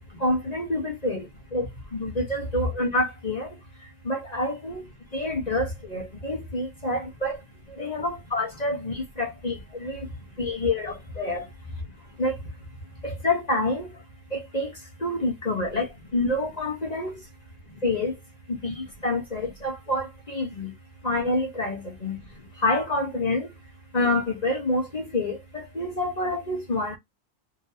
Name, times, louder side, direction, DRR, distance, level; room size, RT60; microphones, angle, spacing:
voice 1, 0.2-1.2 1.5-3.5 4.1-4.8 5.1-7.4 7.8-9.5 9.8-10.1 10.4-11.4 12.2-12.3 13.2-13.9 14.3-14.7 15.0-15.9 16.1-17.1 17.8-18.1 18.6-20.7 21.0-22.2 22.6-23.5 23.9-27.0, left 2 dB, 35° left, 1.0 m, -27 dB
3.5 x 3.0 x 2.7 m
omnidirectional pair, 1.3 m